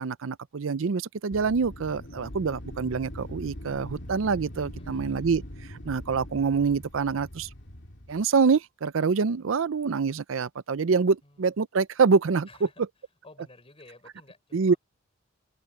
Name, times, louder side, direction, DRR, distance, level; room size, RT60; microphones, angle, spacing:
voice 1, 0.0-5.4 5.7-7.5 8.1-12.5 14.5-14.7, right 5 dB, 70° right, 0.5 m, -25 dB
Wind, 1.3-8.2, left 1 dB, 60° left, 2.6 m, -42 dB
voice 2, 4.8-5.1 11.2-11.5 12.5-12.8 13.2-14.8, left 2 dB, 30° left, 5.2 m, -52 dB
open air
head